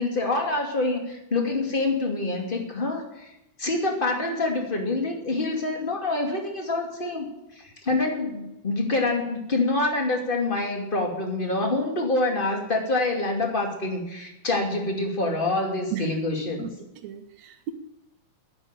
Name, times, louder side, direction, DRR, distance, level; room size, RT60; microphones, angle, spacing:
voice 1, 0.0-3.3 3.6-7.3 7.6-16.7, left 2 dB, 20° left, 2 dB, 2.3 m, -26 dB
voice 2, 17.0-17.7, right 9 dB, 70° right, 3 dB, 2.0 m, -34 dB
11.0 x 10.5 x 9.0 m, 0.91 s
omnidirectional pair, 3.6 m